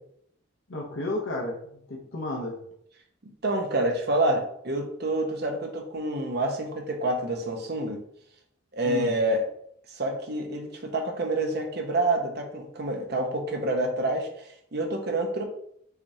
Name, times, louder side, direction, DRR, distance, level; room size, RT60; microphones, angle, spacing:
voice 1, 0.7-2.6 8.8-9.1, left 2 dB, 70° left, -1 dB, 0.8 m, -32 dB
voice 2, 3.4-8.0 8.7-9.4 9.9-15.4, right 2 dB, 50° right, 3 dB, 0.9 m, -28 dB
5.8 x 3.3 x 2.8 m, 0.68 s
head